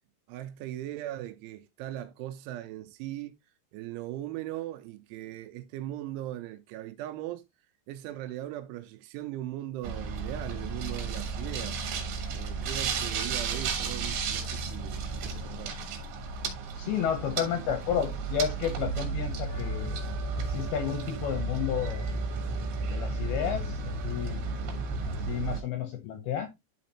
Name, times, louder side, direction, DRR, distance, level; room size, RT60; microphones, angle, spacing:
voice 1, 0.3-3.4 3.7-7.4 7.9-11.8 12.3-15.8, right 14 dB, 85° right, 3.1 m, -39 dB
sound 1, 9.8-25.6, right 4 dB, 70° right, 3.2 m, -33 dB
voice 2, 16.8-20.0 20.4-22.0 22.8-24.4 25.0-26.5, left 9 dB, 80° left, 2.3 m, -31 dB
Trumpet, 19.5-24.5, right 11 dB, 50° left, 1.4 m, -50 dB
11.5 x 4.3 x 2.8 m
omnidirectional pair, 5.5 m